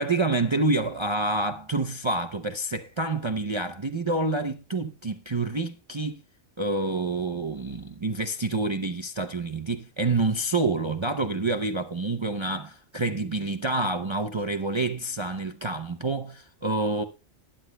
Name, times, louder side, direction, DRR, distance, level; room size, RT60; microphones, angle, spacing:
voice 1, 0.0-6.2 6.6-17.0, right 2 dB, 45° right, 0.3 m, -28 dB
20.0 x 10.0 x 2.2 m
omnidirectional pair, 1.4 m